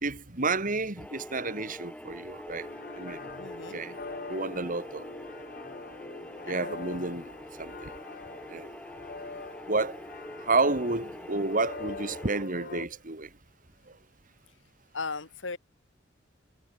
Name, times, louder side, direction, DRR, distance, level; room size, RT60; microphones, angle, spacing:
voice 1, 0.0-2.7 3.0-3.2 3.7-3.9 4.3-5.1 6.5-7.3 7.6-7.9 8.5-8.7 9.7-10.0 10.4-13.3, right 3 dB, 45° right, 2.8 m, -30 dB
sound 1, 1.0-12.5, equal, 5° left, 6.3 m, -44 dB
sound 2, 2.6-12.9, left 3 dB, 50° left, 1.6 m, -44 dB
voice 2, 3.4-3.8 6.5-6.8 14.9-15.6, left 4 dB, 80° left, 1.8 m, -37 dB
head